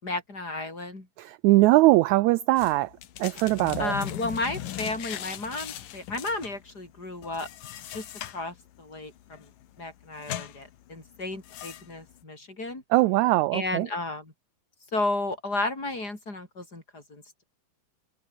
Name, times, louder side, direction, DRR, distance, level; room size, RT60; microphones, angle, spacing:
voice 1, 0.0-1.1 3.8-7.5 7.9-8.1 8.3-9.5 9.8-12.8 13.5-14.3 14.9-17.4, left 2 dB, 30° left, 6.0 m, -33 dB
voice 2, 1.2-2.9 3.2-3.9 12.9-13.9, right 19 dB, 80° right, 1.7 m, -21 dB
sound 1, 2.6-12.2, left 12 dB, 80° left, 3.1 m, -40 dB
omnidirectional pair, 3.7 m